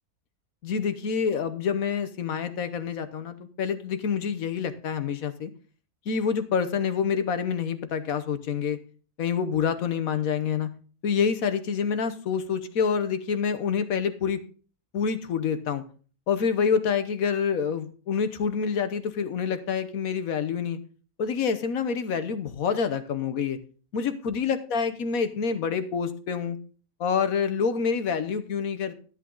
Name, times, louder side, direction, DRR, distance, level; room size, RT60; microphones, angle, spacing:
voice 1, 0.6-5.5 6.1-8.8 9.2-10.7 11.0-14.4 14.9-15.8 16.3-20.8 21.2-23.6 23.9-26.6 27.0-28.9, left 6 dB, 75° left, 11 dB, 1.4 m, -27 dB
12.5 x 8.5 x 3.8 m, 0.39 s
omnidirectional pair, 1.5 m